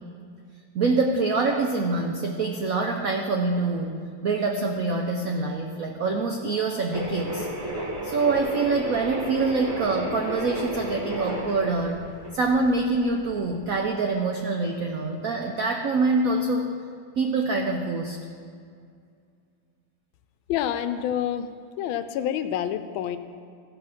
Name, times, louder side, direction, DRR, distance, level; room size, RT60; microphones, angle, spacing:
voice 1, 0.7-7.5 8.0-12.0 12.3-16.7 17.2-18.2, right 3 dB, 80° right, 3 dB, 0.7 m, -25 dB
sound 1, 6.9-13.8, right 1 dB, 65° right, 2.7 m, -33 dB
voice 2, 20.5-21.5 21.8-23.2, left 10 dB, 75° left, 10 dB, 1.3 m, -27 dB
15.0 x 5.5 x 5.8 m, 2.2 s
omnidirectional pair, 2.3 m